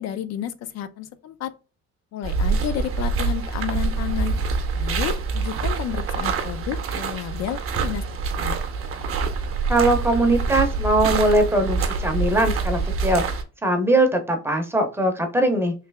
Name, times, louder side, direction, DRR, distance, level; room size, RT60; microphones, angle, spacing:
voice 1, 0.0-1.5 2.1-4.4 4.7-8.1 8.4-8.6, left 11 dB, 65° left, 0.4 m, -31 dB
sound 1, 2.2-13.4, right 4 dB, 50° right, 0.7 m, -25 dB
voice 2, 9.7-15.7, right 1 dB, 10° right, 0.6 m, -21 dB
3.2 x 2.8 x 3.3 m
cardioid pair, 155°, 29 cm